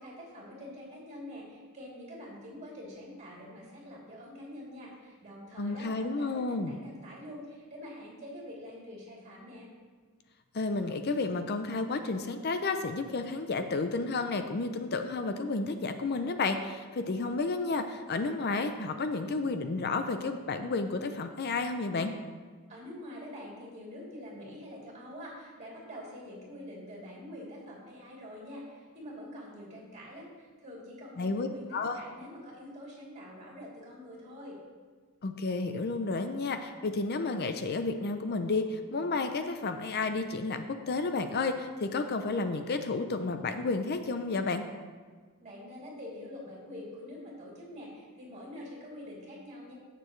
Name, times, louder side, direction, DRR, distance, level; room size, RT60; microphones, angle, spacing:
voice 1, 0.0-9.7 22.7-34.6 45.4-49.7, left 1 dB, 30° right, -5 dB, 3.0 m, -45 dB
voice 2, 5.6-6.7 10.5-22.1 31.2-31.5 31.7-32.0 35.2-44.6, left 3 dB, 45° left, 8 dB, 0.5 m, -31 dB
16.5 x 6.7 x 3.2 m, 1.5 s
head